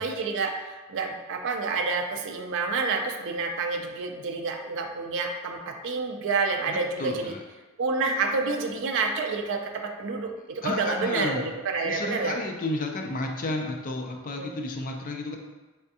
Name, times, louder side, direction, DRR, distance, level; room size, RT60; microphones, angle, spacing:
voice 1, 0.0-7.3 7.8-12.4 14.3-14.5, right 4 dB, 55° right, 4 dB, 0.4 m, -29 dB
voice 2, 6.7-7.4 10.6-11.5 11.8-15.4, left 2 dB, 35° left, 2 dB, 0.4 m, -32 dB
3.5 x 3.3 x 2.7 m, 1.2 s
head